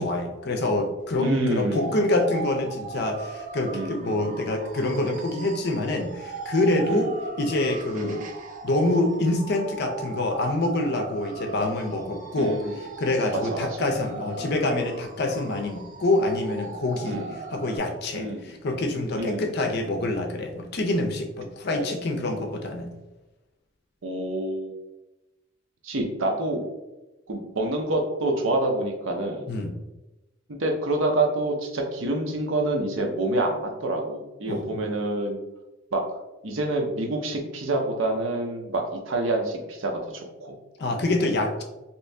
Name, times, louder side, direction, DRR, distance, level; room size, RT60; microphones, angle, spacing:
voice 1, 0.0-8.2 8.6-12.6 13.0-22.9 29.5-29.7 34.4-34.8 40.8-41.6, left 2 dB, 55° left, 3 dB, 0.5 m, -26 dB
voice 2, 1.2-2.0 3.7-4.3 6.9-7.1 7.9-8.2 12.4-12.8 13.3-13.8 14.4-14.5 17.0-17.4 18.1-18.5 19.2-19.5 21.7-22.0 24.0-24.8 25.8-26.7 27.3-29.5 30.5-35.4 35.9-36.0 36.4-40.6, right 2 dB, 80° right, 2 dB, 0.6 m, -27 dB
sound 1, 1.7-17.8, right 4 dB, 40° right, 0.4 m, -39 dB
2.9 x 2.6 x 3.3 m, 1.0 s
head